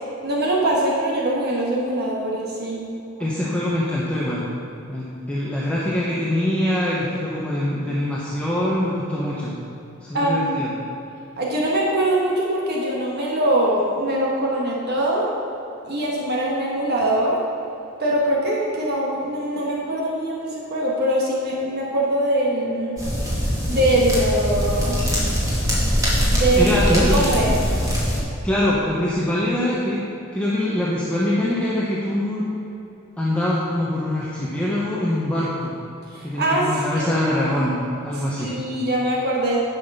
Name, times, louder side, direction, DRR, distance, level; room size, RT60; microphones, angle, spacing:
voice 1, 0.2-2.8 10.1-10.6 11.4-15.3 15.8-17.4 18.0-23.0 23.7-25.0 26.3-27.6 36.1-36.7 37.0-37.2 38.4-39.6, right 1 dB, 50° right, -3 dB, 1.4 m, -22 dB
voice 2, 3.2-4.5 4.9-9.5 10.1-10.7 26.6-27.2 28.4-30.0 30.3-32.5 33.2-35.7 36.2-38.6, left 1 dB, 5° left, -7 dB, 1.0 m, -23 dB
sound 1, 23.0-28.2, equal, 15° right, 2.1 m, -22 dB
10.5 x 5.8 x 5.5 m, 2.9 s
head